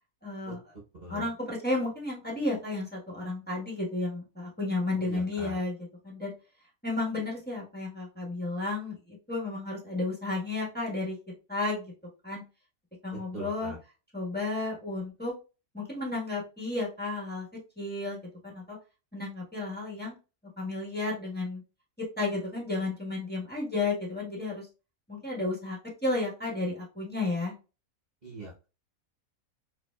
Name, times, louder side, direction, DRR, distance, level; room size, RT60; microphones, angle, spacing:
voice 1, 0.2-0.6 1.1-6.3 6.8-11.2 11.5-11.9 12.2-12.4 13.0-13.7 14.1-15.3 15.7-17.5 17.8-18.8 19.1-20.2 20.6-21.6 22.2-24.7 25.1-27.5, left 2 dB, 5° left, -4 dB, 1.3 m, -32 dB
voice 2, 5.0-5.6 13.1-13.8 28.2-28.7, right 2 dB, 35° right, -6 dB, 1.0 m, -42 dB
4.9 x 2.7 x 2.3 m, 0.31 s
omnidirectional pair, 1.5 m